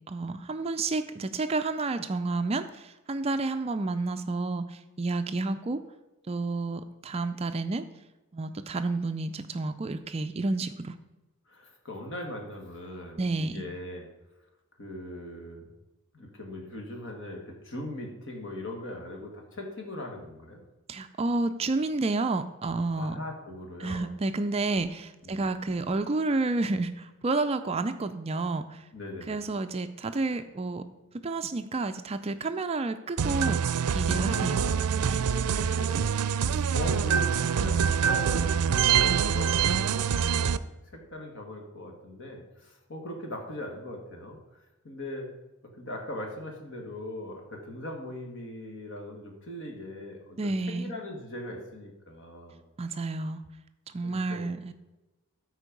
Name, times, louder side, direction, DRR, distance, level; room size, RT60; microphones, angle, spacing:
voice 1, 0.1-5.8 6.3-7.8 8.3-11.0 13.2-13.6 20.9-23.2 23.8-28.9 29.3-30.8 31.2-33.6 33.9-34.6 35.1-35.2 50.4-50.9 52.8-53.4 53.9-54.7, right 3 dB, 25° right, 9 dB, 0.3 m, -30 dB
voice 2, 11.5-14.1 14.8-15.7 16.1-20.6 23.0-24.1 25.2-25.5 28.9-29.4 34.1-36.1 36.4-40.5 40.9-45.3 45.8-52.6 54.0-54.5, left 1 dB, 55° left, 2 dB, 1.9 m, -40 dB
sound 1, 33.2-40.6, right 7 dB, 90° right, 0.4 m, -25 dB
13.0 x 4.5 x 5.2 m, 1.1 s
head